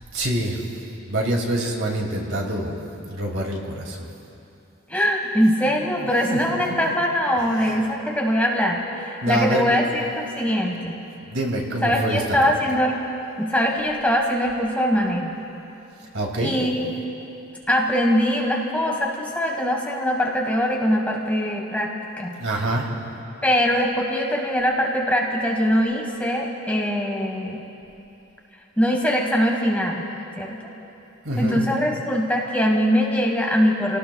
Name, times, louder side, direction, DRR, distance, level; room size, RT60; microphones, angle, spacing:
voice 1, 0.1-0.6 1.1-2.8 3.1-4.1 5.6-5.7 6.0-6.8 7.4-7.8 9.2-9.7 11.3-12.5 16.1-16.6 22.4-22.9 31.2-31.6, right 1 dB, 70° right, 0 dB, 2.4 m, -26 dB
voice 2, 4.9-11.0 11.8-13.0 13.4-15.4 16.4-16.9 17.7-21.9 22.2-22.4 23.4-27.6 28.8-30.1 30.4-30.6 31.4-34.0, equal, 5° left, -1 dB, 1.5 m, -22 dB
30.0 x 18.0 x 2.3 m, 2.8 s
head